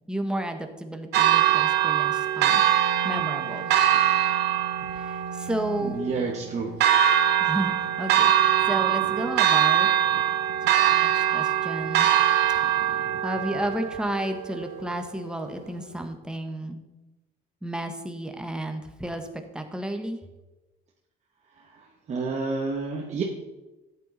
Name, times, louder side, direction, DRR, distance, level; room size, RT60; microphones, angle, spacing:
voice 1, 0.1-2.6 3.0-3.7 4.9-6.0 7.4-8.3 8.7-9.9 10.7-12.1 13.2-16.8 17.6-20.2, right 1 dB, 5° right, 5 dB, 1.3 m, -32 dB
Church bell, 1.1-15.1, right 10 dB, 85° right, 1.0 m, -23 dB
voice 2, 5.8-6.7 22.1-23.2, right 4 dB, 40° right, -1 dB, 1.4 m, -29 dB
13.0 x 8.8 x 4.1 m, 1.1 s
cardioid pair, 110°, 17 cm